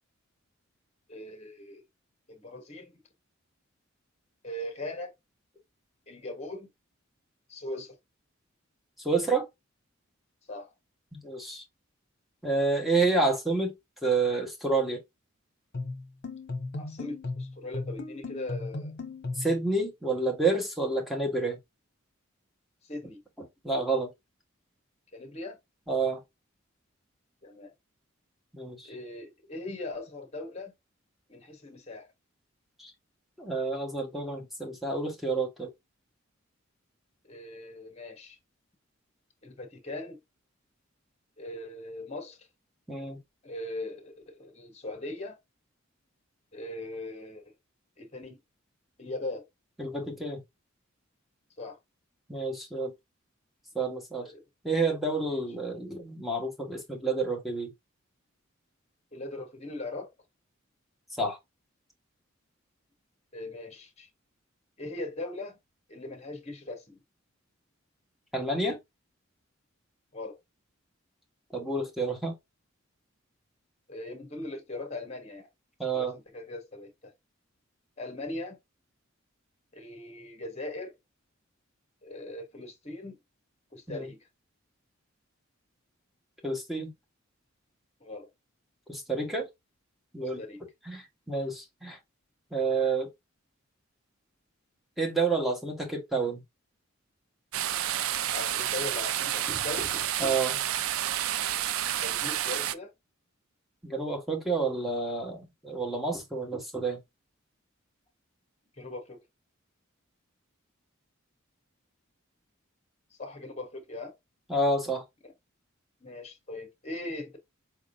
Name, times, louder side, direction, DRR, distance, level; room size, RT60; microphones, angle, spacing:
voice 1, 1.1-1.8 2.3-2.9 4.4-5.1 6.1-6.7 7.5-8.0 10.5-10.7 16.8-18.9 20.1-20.2 22.8-23.2 25.1-25.6 27.4-27.7 28.8-30.7 31.3-32.1 37.2-38.4 39.4-40.2 41.4-42.5 43.4-45.4 46.5-47.4 48.0-48.4 49.0-49.5 51.6-51.8 54.2-54.4 55.3-55.4 59.1-60.1 63.3-64.1 64.8-65.6 65.9-67.0 70.1-70.4 73.9-75.5 75.9-77.1 78.0-78.6 79.7-80.9 82.0-83.2 83.7-84.2 88.0-88.3 90.2-90.6 98.3-100.0 102.0-102.9 108.7-109.2 113.2-114.2 115.2-115.3 116.0-117.4, left 2 dB, 30° left, 1.3 m, -40 dB
voice 2, 9.0-9.5 11.1-11.6 12.4-13.7 14.0-15.0 19.4-21.6 23.6-24.1 25.9-26.2 28.5-28.9 32.8-32.9 33.4-35.7 42.9-43.2 49.8-50.4 52.3-52.9 53.7-54.3 54.6-57.7 61.2-61.4 68.3-68.8 71.5-72.3 75.8-76.2 83.9-84.1 86.4-86.9 88.9-89.5 90.1-90.4 90.9-92.0 92.5-93.1 95.0-96.4 99.5-99.6 100.2-100.6 103.8-107.0 114.5-115.0, right 3 dB, ahead, 1.3 m, -29 dB
sound 1, 15.7-19.6, left 3 dB, 55° left, 1.0 m, -36 dB
sound 2, 97.5-102.7, right 11 dB, 90° right, 0.4 m, -30 dB
4.5 x 3.6 x 2.6 m
head